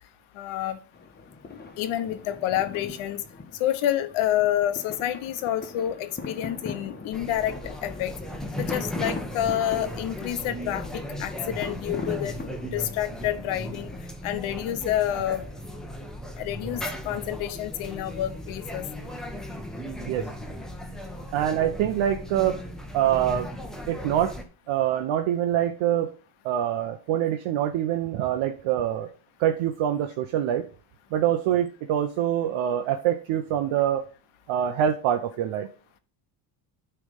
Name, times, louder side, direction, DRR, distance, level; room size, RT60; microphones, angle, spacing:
voice 1, 0.3-0.8 1.8-3.2 3.6-7.6 7.8-8.1 8.6-12.4 12.6-13.9 14.2-15.4 16.4-18.9, left 12 dB, 85° left, 10 dB, 1.1 m, -28 dB
sound 1, 0.9-14.1, left 4 dB, 20° left, 1.3 m, -42 dB
sound 2, 7.1-24.4, equal, ahead, 1.0 m, -36 dB
voice 2, 21.3-22.6 22.9-23.5 23.9-24.3 24.7-26.1 26.4-29.1 29.4-30.6 31.1-34.0 34.5-35.7, right 10 dB, 75° right, 5 dB, 0.9 m, -25 dB
9.9 x 3.5 x 5.3 m, 0.36 s
cardioid pair, 125°, 47 cm